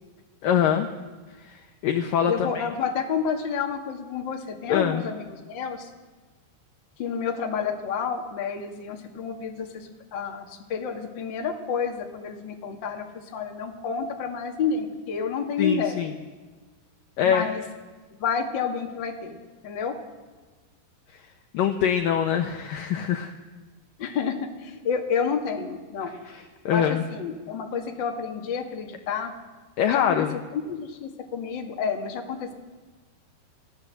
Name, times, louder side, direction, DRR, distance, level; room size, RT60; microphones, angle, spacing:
voice 1, 0.4-0.9 1.4-2.6 4.7-5.0 15.6-16.1 17.2-17.5 21.5-23.3 26.3-27.0 29.8-30.4, left 8 dB, 80° left, 5 dB, 2.0 m, -24 dB
voice 2, 2.3-5.9 7.0-16.1 17.2-17.6 18.2-19.4 19.6-20.0 24.0-26.1 26.7-29.3 29.8-30.0 30.5-32.5, left 6 dB, 40° left, 2 dB, 1.7 m, -30 dB
29.0 x 16.5 x 7.7 m, 1.3 s
omnidirectional pair, 5.3 m